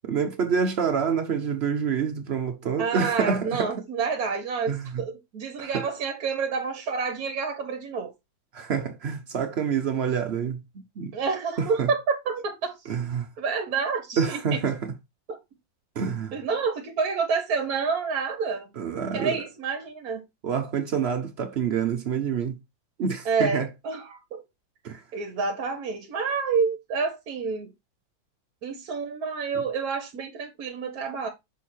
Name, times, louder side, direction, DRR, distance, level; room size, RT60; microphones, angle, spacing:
voice 1, 0.0-3.7 4.7-5.0 5.6-5.9 8.5-10.6 11.0-11.1 11.6-11.9 12.9-13.3 14.2-14.9 16.0-16.4 18.8-19.4 20.4-22.6 23.0-23.7 24.8-25.0, right 6 dB, 85° right, 0.5 m, -27 dB
voice 2, 2.8-8.1 11.1-12.7 13.4-14.6 15.3-15.4 16.3-18.7 19.1-20.2 23.2-24.4 25.1-27.7 28.6-31.3, right 5 dB, 60° right, 1.3 m, -28 dB
6.4 x 3.6 x 4.2 m
omnidirectional pair, 2.0 m